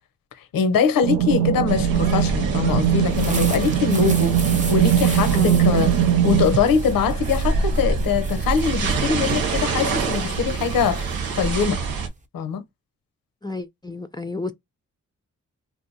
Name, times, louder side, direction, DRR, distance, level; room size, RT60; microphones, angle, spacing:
voice 1, 0.5-5.9 6.2-11.8 12.3-12.6, left 6 dB, 75° left, 0.8 m, -23 dB
sound 1, 1.0-6.5, right 10 dB, 70° right, 0.5 m, -20 dB
sound 2, 1.7-12.1, right 4 dB, 85° right, 1.0 m, -26 dB
sound 3, 2.9-12.2, right 3 dB, 20° right, 0.7 m, -38 dB
voice 2, 5.3-5.7 13.4-14.5, left 3 dB, 10° left, 0.5 m, -31 dB
3.5 x 2.5 x 2.7 m
supercardioid pair, 45°, 34 cm